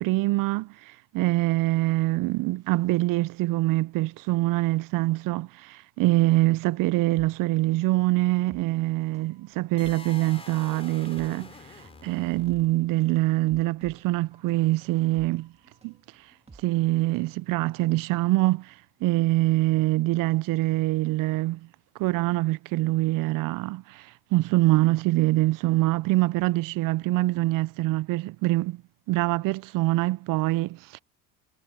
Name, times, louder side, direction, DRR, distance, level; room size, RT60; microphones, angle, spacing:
voice 1, 0.0-11.5 12.0-15.5 15.8-15.9 16.6-18.7 19.0-21.6 22.0-28.8 29.1-31.0, right 18 dB, 60° right, 0.5 m, -24 dB
sound 1, 7.8-17.4 17.7-17.8, right 3 dB, 15° right, 2.0 m, -54 dB
sound 2, 9.8-12.9, left 3 dB, 15° left, 4.1 m, -46 dB
sound 3, 11.2-20.6 20.9-21.0, left 9 dB, 45° left, 3.9 m, -60 dB
cardioid pair, 125°, 37 cm